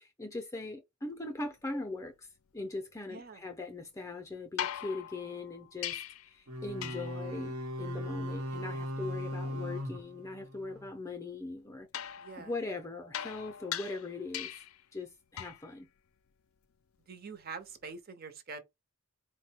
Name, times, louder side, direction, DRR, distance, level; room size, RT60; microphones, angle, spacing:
voice 1, 0.0-2.3 2.5-14.5 14.9-15.9, left 3 dB, 15° left, 0.5 m, -40 dB
voice 2, 3.1-3.4 12.2-12.5 17.1-18.6, right 4 dB, 45° right, 0.7 m, -45 dB
sound 1, 4.6-6.3 6.8-7.2 11.9-14.8 15.4-15.7 17.7-17.8, left 10 dB, 75° left, 0.4 m, -40 dB
sound 2, 6.5-10.9, equal, 90° right, 0.9 m, -38 dB
4.1 x 2.1 x 4.3 m
head